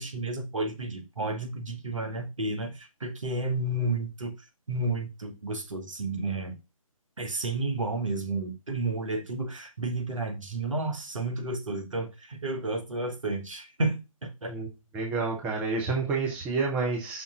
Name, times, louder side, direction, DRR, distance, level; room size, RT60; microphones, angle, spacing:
voice 1, 0.0-4.3 4.7-6.6 7.2-14.5, right 2 dB, 60° right, 1.8 m, -31 dB
voice 2, 14.9-17.2, right 4 dB, 5° right, 0.8 m, -29 dB
6.0 x 3.6 x 5.5 m
figure-of-eight pair, 145°, 18 cm